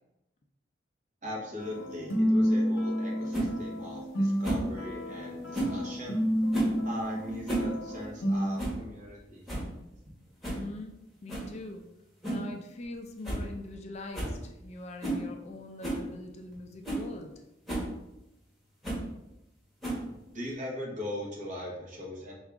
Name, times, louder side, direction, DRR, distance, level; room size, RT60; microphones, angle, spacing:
voice 1, 1.2-6.2 6.8-9.4 20.3-22.3, left 1 dB, 45° right, -2 dB, 1.1 m, -40 dB
sound 1, 1.6-8.6, equal, 75° left, 0.8 m, -30 dB
sound 2, 3.3-3.5 4.4-4.7 5.5-5.8 6.5-6.8 7.3-7.7 8.0-8.1 8.6-8.8 9.2-9.3 9.5-9.7 10.4-10.7 11.3-11.5 12.2-12.5 12.8-12.9 13.2-13.5 13.7-13.8 14.1-14.4 15.0-15.2 15.8-16.0 16.5-16.6 16.8-17.1 17.7-17.9 18.8-19.1 19.8-20.2, right 2 dB, ahead, 1.2 m, -32 dB
voice 2, 10.4-10.9 11.2-11.9 12.2-17.4, left 2 dB, 35° left, 4 dB, 0.4 m, -43 dB
4.6 x 2.4 x 3.5 m, 0.92 s
head